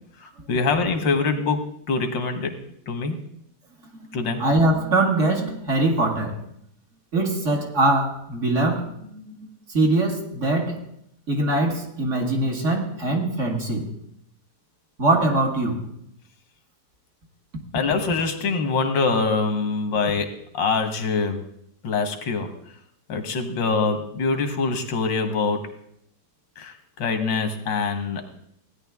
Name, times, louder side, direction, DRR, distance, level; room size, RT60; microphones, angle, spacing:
voice 1, 0.2-2.5 2.9-3.2 4.1-4.4 17.7-21.4 21.8-22.5 23.1-25.7 26.6-28.2, left 4 dB, 90° left, 2.0 m, -24 dB
voice 2, 4.1-6.4 7.1-9.3 9.7-10.8 11.3-13.9 15.0-15.9, right 2 dB, 45° right, 1.8 m, -22 dB
16.0 x 10.0 x 3.6 m
omnidirectional pair, 2.0 m